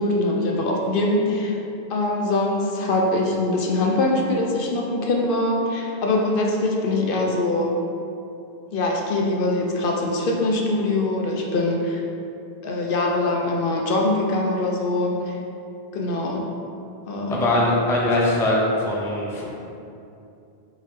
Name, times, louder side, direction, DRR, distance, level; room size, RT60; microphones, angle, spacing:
voice 1, 0.0-1.6 1.9-7.8 8.7-12.0 12.6-15.4 15.9-16.4 17.1-17.4, left 2 dB, 65° left, -1 dB, 0.7 m, -23 dB
voice 2, 17.3-19.4, left 1 dB, 5° left, -4 dB, 0.4 m, -21 dB
4.1 x 3.7 x 3.3 m, 2.7 s
omnidirectional pair, 1.1 m